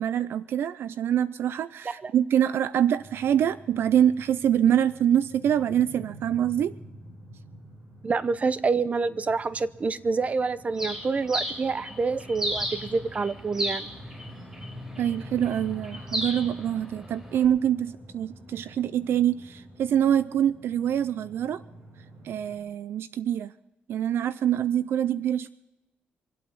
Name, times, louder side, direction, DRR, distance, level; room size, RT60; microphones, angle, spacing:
voice 1, 0.0-6.7 15.0-21.6 22.2-23.5 23.9-25.5, right 10 dB, 75° right, 16 dB, 0.4 m, -25 dB
sound 1, 3.0-22.6, equal, 55° right, 7.5 m, -46 dB
voice 2, 8.0-13.9, right 4 dB, 35° right, 16 dB, 0.8 m, -27 dB
Bird, 10.8-17.5, equal, 15° right, 4.8 m, -35 dB
25.0 x 8.5 x 5.9 m, 0.98 s
cardioid pair, 85°, 4 cm